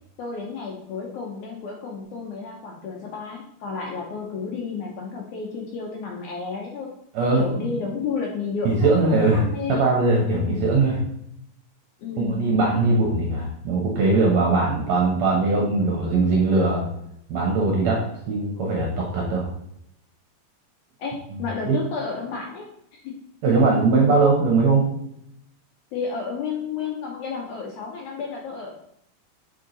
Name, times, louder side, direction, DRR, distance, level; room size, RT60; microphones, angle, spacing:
voice 1, 0.2-6.9 7.3-9.9 10.3-10.7 12.0-12.5 21.0-23.2 25.9-28.7, left 5 dB, 70° left, 0 dB, 1.9 m, -31 dB
voice 2, 7.2-7.7 8.7-9.4 9.7-11.0 12.2-16.8 17.3-19.5 21.7-21.8 23.4-24.9, right 3 dB, 65° right, -1 dB, 1.8 m, -20 dB
6.4 x 4.7 x 3.9 m, 0.75 s
omnidirectional pair, 4.2 m